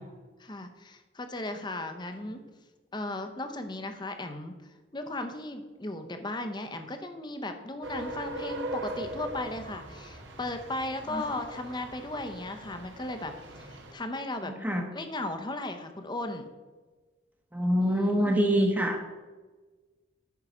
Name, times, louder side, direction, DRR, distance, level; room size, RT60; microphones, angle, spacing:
voice 1, 0.4-2.4 2.9-4.5 4.9-14.5 14.9-16.5 17.8-18.4, left 2 dB, 25° left, 7 dB, 0.8 m, -36 dB
sound 1, 7.8-13.9, right 1 dB, 75° right, 1.3 m, -40 dB
voice 2, 14.4-14.8 17.5-19.1, equal, 10° right, 3 dB, 1.0 m, -25 dB
9.3 x 5.6 x 4.9 m, 1.3 s
head